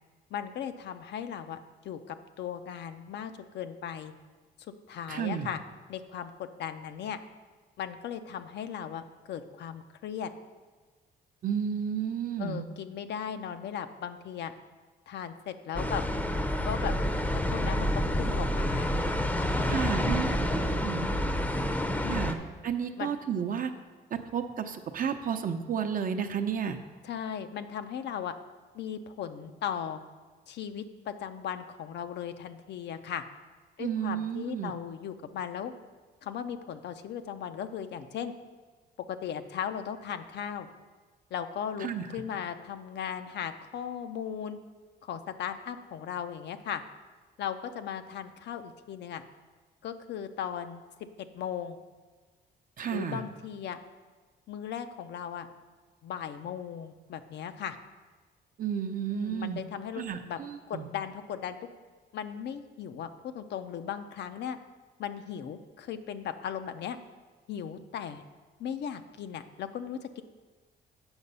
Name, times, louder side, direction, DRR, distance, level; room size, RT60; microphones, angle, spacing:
voice 1, 0.3-1.6 1.8-4.1 4.9-5.6 5.9-7.2 7.8-10.3 12.4-14.5 15.1-16.0 16.6-16.9 17.5-18.9 22.0-22.5 23.0-23.2 27.0-28.3 28.7-30.0 30.5-33.2 33.8-35.7 36.2-38.3 39.1-40.7 41.3-44.6 45.0-46.8 47.4-49.2 49.8-51.1 51.3-51.8 52.9-53.8 54.5-55.5 56.0-57.8 59.1-60.4 60.7-61.6 62.1-64.6 65.0-67.0 67.5-68.2 68.6-70.2, left 8 dB, 65° left, 9 dB, 0.6 m, -37 dB
voice 2, 5.1-5.5 11.4-12.6 19.6-21.1 22.1-22.4 22.6-23.7 24.1-26.8 33.8-34.7 41.8-42.1 52.8-53.2 58.6-59.6 60.0-60.9, right 8 dB, 45° right, 7 dB, 0.7 m, -32 dB
sound 1, 15.7-22.3, left 1 dB, 10° left, 0.7 m, -28 dB
8.0 x 5.8 x 5.5 m, 1.4 s
cardioid pair, 100°, 19 cm